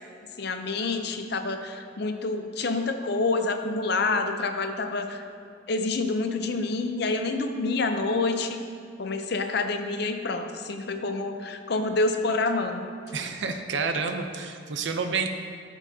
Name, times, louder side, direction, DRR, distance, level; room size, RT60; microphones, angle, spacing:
voice 1, 0.4-5.2 5.7-8.6 9.0-12.9, left 3 dB, 55° left, 6 dB, 0.6 m, -27 dB
voice 2, 13.1-15.3, right 4 dB, 70° right, 6 dB, 0.6 m, -29 dB
12.0 x 7.2 x 2.8 m, 2.3 s
head